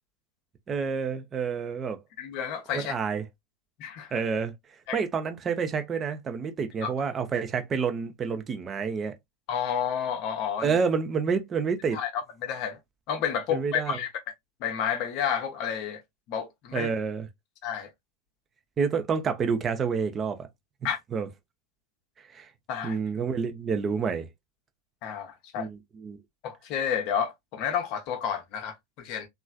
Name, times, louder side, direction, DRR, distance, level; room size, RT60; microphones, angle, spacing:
voice 1, 0.7-2.0 2.7-3.2 4.1-4.5 4.9-9.1 10.6-12.0 13.5-14.0 16.7-17.3 18.8-20.5 21.1-21.3 22.3-22.5 22.8-24.3 25.6-26.2, right 5 dB, 25° right, 0.5 m, -28 dB
voice 2, 2.2-2.9 3.8-4.2 4.9-5.0 6.8-6.9 9.5-10.8 11.9-12.8 13.1-14.1 14.6-16.0 16.3-16.9 17.6-17.9 20.8-21.0 22.7-23.0 25.0-25.7 26.4-29.3, left 8 dB, 40° left, 0.7 m, -30 dB
3.1 x 2.4 x 2.2 m
figure-of-eight pair, 90°, 0 cm